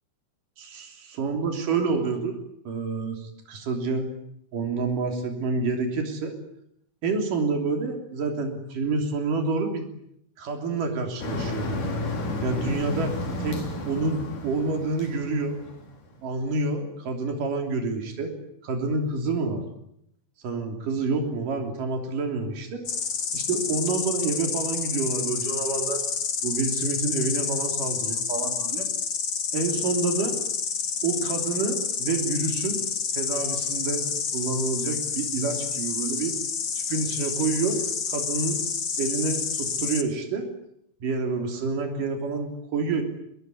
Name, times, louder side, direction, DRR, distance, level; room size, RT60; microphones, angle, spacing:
voice 1, 0.6-2.4 2.6-4.1 4.5-6.4 7.0-9.9 10.4-11.9 12.4-13.1 13.4-15.6 16.2-18.3 18.6-19.6 20.4-22.9 23.3-26.0 26.4-28.9 29.5-30.3 31.0-32.8 33.1-34.1 34.3-36.3 36.8-37.8 38.1-38.6 39.0-40.5 41.0-43.0, right 4 dB, 85° right, 4 dB, 4.9 m, -28 dB
Motor vehicle (road), 11.2-16.2, left 1 dB, 75° left, 5.8 m, -32 dB
Insect, 22.9-40.0, left 6 dB, 40° left, 2.1 m, -29 dB
24.5 x 21.0 x 9.4 m, 0.74 s
omnidirectional pair, 3.7 m